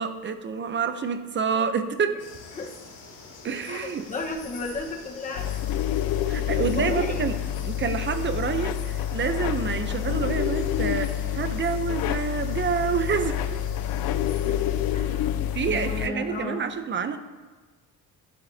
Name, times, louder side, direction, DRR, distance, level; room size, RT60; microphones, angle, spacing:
voice 1, 0.0-2.2 3.4-4.1 6.3-13.6 15.5-17.2, right 6 dB, 30° right, 9 dB, 0.7 m, -28 dB
sound 1, 2.2-14.9, left 4 dB, 60° left, 2.9 m, -46 dB
voice 2, 3.7-5.5 6.4-6.5 6.8-7.2 14.4-14.6 14.9-16.8, left 2 dB, 20° left, 1 dB, 1.3 m, -34 dB
sound 2, 5.4-16.1, left 11 dB, 80° left, 0.6 m, -28 dB
17.5 x 11.5 x 2.8 m, 1.3 s
cardioid pair, 160°, 36 cm